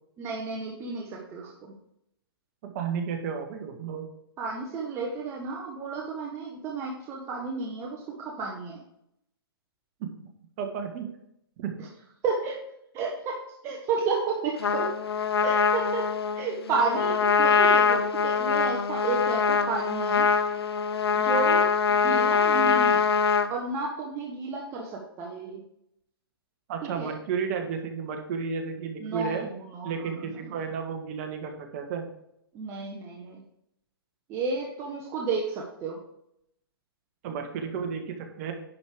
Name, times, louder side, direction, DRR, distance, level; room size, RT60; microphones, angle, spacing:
voice 1, 0.2-1.4 4.4-8.8 12.2-12.6 12.9-14.9 15.4-16.1 16.4-20.3 21.1-23.0 23.5-25.6 26.8-27.1 29.0-29.5 29.7-29.9 32.5-33.4 34.3-36.0, right 4 dB, 20° right, -1 dB, 1.3 m, -32 dB
voice 2, 2.6-4.1 10.0-10.1 10.6-11.1 11.6-11.7 26.7-29.5 29.8-32.1 37.2-38.5, right 6 dB, 35° right, 5 dB, 1.6 m, -32 dB
Trumpet, 14.6-23.5, left 5 dB, 80° left, 0.9 m, -23 dB
10.5 x 5.3 x 5.1 m, 0.76 s
hypercardioid pair, 140°, 13 cm